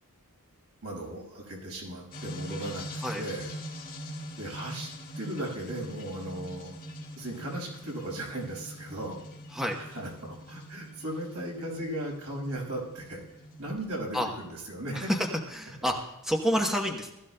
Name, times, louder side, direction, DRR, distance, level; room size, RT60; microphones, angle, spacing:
voice 1, 0.8-3.5 4.4-4.9 5.2-6.8 7.2-9.2 9.8-15.1 15.8-15.9, right 1 dB, 80° right, -1 dB, 5.5 m, -37 dB
sound 1, 2.1-14.2, equal, 40° left, 2.2 m, -43 dB
voice 2, 14.9-15.9 16.2-17.1, equal, ahead, 1 dB, 1.0 m, -28 dB
20.0 x 14.0 x 2.2 m, 0.91 s
head